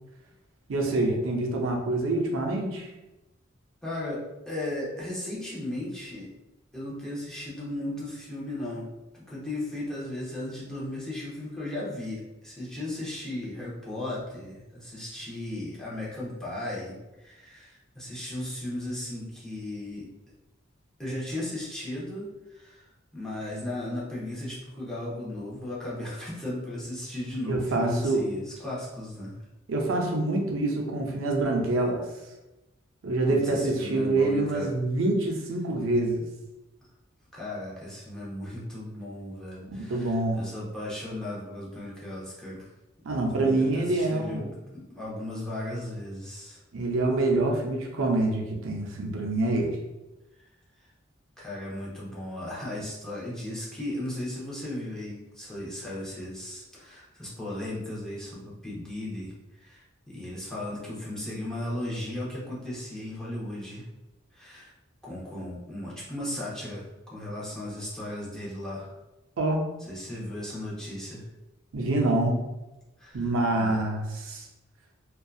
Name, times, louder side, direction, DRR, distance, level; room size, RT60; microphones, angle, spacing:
voice 1, 0.7-2.9 27.5-28.2 29.7-32.0 33.0-36.2 39.7-40.4 43.0-44.5 46.7-49.8 69.4-69.6 71.7-72.4 73.1-74.5, right 2 dB, 85° right, 1 dB, 0.5 m, -26 dB
voice 2, 3.8-6.3 6.7-8.9 9.1-20.1 21.0-29.4 33.3-34.7 37.3-42.7 43.1-46.6 51.4-63.8 64.3-64.7 65.0-66.8 67.1-68.9 69.8-71.3 73.0-73.8, left 1 dB, 5° left, -7 dB, 0.7 m, -36 dB
2.6 x 2.3 x 2.3 m, 1.0 s
head